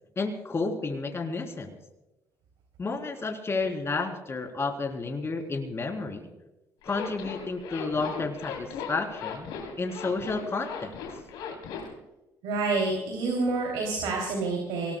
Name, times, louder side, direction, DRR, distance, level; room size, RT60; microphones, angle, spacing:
voice 1, 0.2-1.7 2.8-6.3 6.8-9.5 9.8-10.9, left 3 dB, 35° left, 3 dB, 3.7 m, -31 dB
Zipper (clothing), 6.8-11.9, left 6 dB, 80° left, 3.5 m, -38 dB
voice 2, 12.4-14.9, right 3 dB, 80° right, 0 dB, 3.1 m, -28 dB
24.0 x 19.5 x 2.3 m, 0.99 s
supercardioid pair, 65°, 8 cm